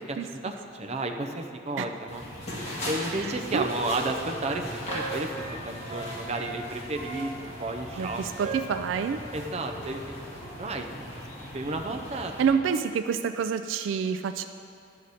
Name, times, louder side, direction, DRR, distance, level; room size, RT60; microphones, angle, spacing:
voice 1, 0.0-2.2 2.8-5.3 5.6-8.6 9.3-10.2 10.6-11.0 11.5-12.6, right 2 dB, 35° right, 4 dB, 0.6 m, -32 dB
sound 1, 2.1-12.5, left 1 dB, 35° left, 2.0 m, -39 dB
Wind instrument woodwind instrument, 3.2-6.6 6.9-10.0 10.3-10.5, right 3 dB, 55° right, 1.4 m, -40 dB
voice 2, 3.2-3.7 8.0-9.2 12.4-14.5, right 6 dB, 80° right, 10 dB, 0.3 m, -27 dB
11.5 x 6.5 x 4.1 m, 2.5 s
head